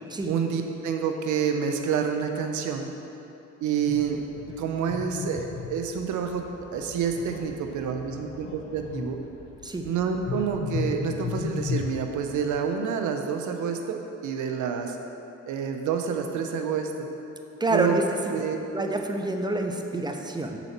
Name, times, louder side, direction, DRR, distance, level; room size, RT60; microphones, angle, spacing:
voice 1, 0.2-2.9 3.6-4.2 4.6-6.4 6.7-9.2 9.8-15.0 15.5-17.1 17.7-18.0 18.3-18.6, right 7 dB, 75° right, 4 dB, 0.7 m, -28 dB
sound 1, 3.9-12.6, left 5 dB, 45° left, 0.6 m, -36 dB
voice 2, 17.6-18.0 18.7-20.6, right 2 dB, 15° right, 3 dB, 0.6 m, -27 dB
7.0 x 4.2 x 5.8 m, 2.9 s
cardioid pair, 90°, 30 cm